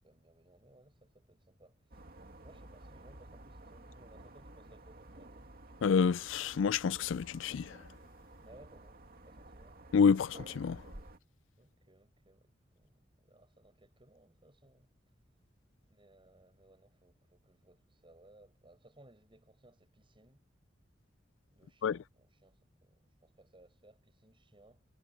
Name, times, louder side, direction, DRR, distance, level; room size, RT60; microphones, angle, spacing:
voice 1, 0.0-2.0 2.4-5.5 8.4-9.8 11.6-14.9 15.8-20.4 21.5-24.9, right 1 dB, 25° right, 6.6 m, -62 dB
sound 1, 1.9-11.2, right 1 dB, 55° right, 2.4 m, -53 dB
voice 2, 5.8-7.8 9.9-10.8 21.8-22.0, left 6 dB, 80° left, 0.4 m, -28 dB
head